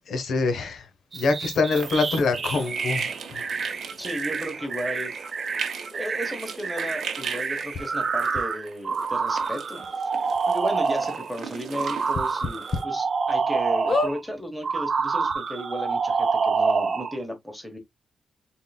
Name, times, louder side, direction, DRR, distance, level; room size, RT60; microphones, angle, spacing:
voice 1, 0.1-0.9 1.1-3.4, left 3 dB, 70° left, 0.9 m, -25 dB
sound 1, 1.1-11.3 11.7-14.2 14.6-17.2, right 5 dB, 40° right, 0.6 m, -27 dB
sound 2, 1.7-12.8, right 6 dB, 65° right, 0.9 m, -39 dB
voice 2, 4.0-5.1 5.9-10.1 10.5-17.8, equal, ahead, 1.0 m, -34 dB
sound 3, 7.7-7.8 8.3-8.4 9.4-9.5 9.8-9.9 10.3-10.4 12.1-12.8 13.3-13.4 13.9-14.1 15.0-15.1 15.3-15.4, left 3 dB, 40° left, 0.7 m, -27 dB
3.8 x 3.7 x 2.3 m
wide cardioid pair, 170°, 0 cm